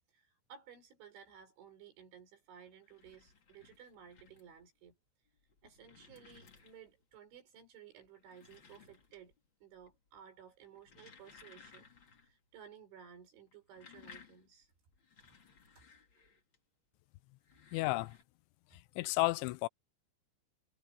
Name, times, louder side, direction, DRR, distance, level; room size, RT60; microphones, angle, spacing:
voice 1, 0.1-5.0 5.6-9.3 9.6-11.9 12.3-14.7 15.8-15.9, right 8 dB, 80° right, 7.6 m, -56 dB
sound 1, 2.7-4.6 5.3-7.0 8.0-9.5 9.7-10.2 10.6-12.3 12.6-12.7 13.5-16.6 17.3-18.2, left 5 dB, 40° left, 2.0 m, -60 dB
voice 2, 17.7-18.1 19.0-19.7, left 21 dB, 90° left, 3.0 m, -32 dB
omnidirectional pair, 5.3 m